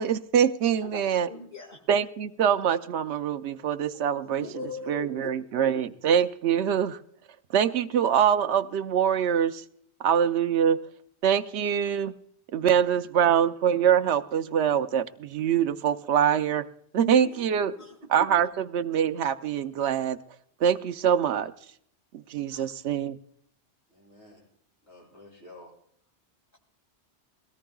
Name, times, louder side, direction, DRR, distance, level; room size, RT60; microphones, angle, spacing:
voice 1, 0.0-1.3 1.9-4.5 4.9-7.0 7.5-9.6 10.0-10.8 11.2-12.1 12.5-16.7 16.9-17.7 18.1-20.2 20.6-21.5 22.3-23.2, right 8 dB, 75° right, 9 dB, 1.0 m, -24 dB
voice 2, 1.3-1.8 4.4-5.1 5.7-5.8 17.0-18.3 22.5-22.7, left 2 dB, 50° left, 0 dB, 2.3 m, -40 dB
voice 3, 23.9-24.4 24.8-25.7, left 2 dB, 70° left, -4 dB, 8.5 m, -50 dB
22.0 x 17.5 x 2.3 m, 0.67 s
omnidirectional pair, 1.1 m